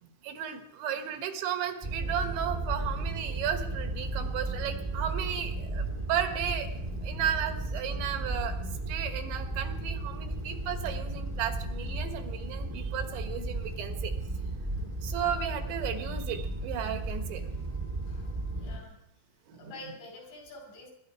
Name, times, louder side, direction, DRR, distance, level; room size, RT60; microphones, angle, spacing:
voice 1, 0.0-14.1 15.0-17.4 19.5-19.7, right 9 dB, 80° right, 6 dB, 3.7 m, -34 dB
sound 1, 1.8-18.8, right 2 dB, 40° right, 0.5 m, -34 dB
voice 2, 18.1-19.0 19.5-20.9, left 1 dB, 80° left, 1 dB, 8.4 m, -47 dB
25.0 x 12.0 x 4.7 m, 0.78 s
omnidirectional pair, 5.2 m